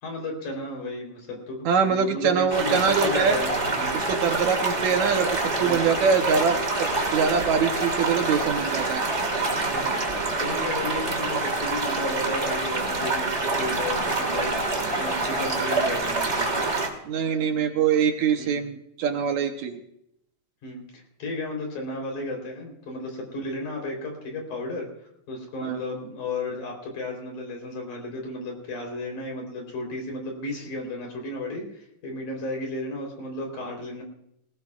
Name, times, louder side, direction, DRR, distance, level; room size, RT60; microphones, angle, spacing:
voice 1, 0.0-3.5 3.8-4.0 5.6-5.9 6.4-6.6 9.7-9.9 10.4-16.7 18.4-18.6 20.6-24.9 25.3-34.0, left 2 dB, 70° left, 1 dB, 5.2 m, -34 dB
voice 2, 1.7-3.4 3.9-5.3 5.6-9.0 17.1-19.8 25.6-25.8, right 6 dB, 70° right, 5 dB, 2.1 m, -24 dB
sound 1, 2.5-16.9, right 3 dB, 30° right, 1.6 m, -26 dB
19.5 x 18.5 x 2.4 m, 0.77 s
omnidirectional pair, 3.7 m